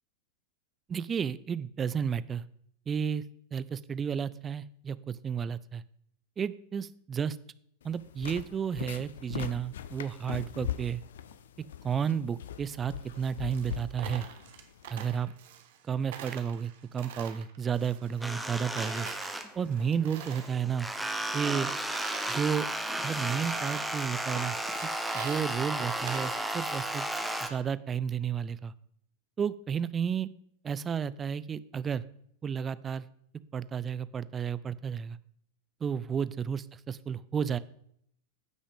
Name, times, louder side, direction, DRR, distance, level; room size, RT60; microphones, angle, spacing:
voice 1, 0.9-2.4 2.9-3.2 3.5-5.8 6.4-7.4 7.8-11.0 11.8-14.3 14.9-15.3 15.8-19.1 19.6-20.9 21.3-21.7 22.3-22.7 23.0-24.6 25.1-27.1 27.4-28.7 29.4-30.3 30.6-32.0 32.4-33.1 33.5-35.2 35.8-37.6, right 7 dB, 20° right, 17 dB, 0.4 m, -32 dB
sound 1, 7.8-15.2, left 9 dB, 60° left, 0.5 m, -41 dB
Coin (dropping), 13.0-15.9 16.1-18.5 18.8-20.6 20.9-22.4 23.0-23.1 23.4-24.0 24.4-26.8, right 9 dB, 55° right, 1.0 m, -46 dB
sound 2, 18.2-19.8 20.1-27.5, right 1 dB, 5° right, 0.9 m, -34 dB
14.5 x 6.1 x 3.5 m, 0.68 s
figure-of-eight pair, 90°, 0 cm